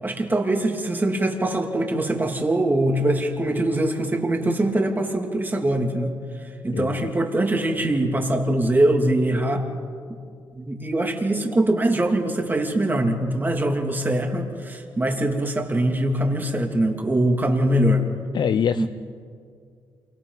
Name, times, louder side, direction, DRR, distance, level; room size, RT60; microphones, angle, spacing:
voice 1, 0.0-6.1 6.4-9.7 10.5-18.1 18.8-18.9, right 1 dB, 20° right, 2 dB, 2.8 m, -22 dB
voice 2, 6.7-7.1 18.3-18.9, left 8 dB, 55° left, 11 dB, 0.5 m, -24 dB
28.0 x 24.5 x 4.1 m, 2.2 s
cardioid pair, 85°, 9 cm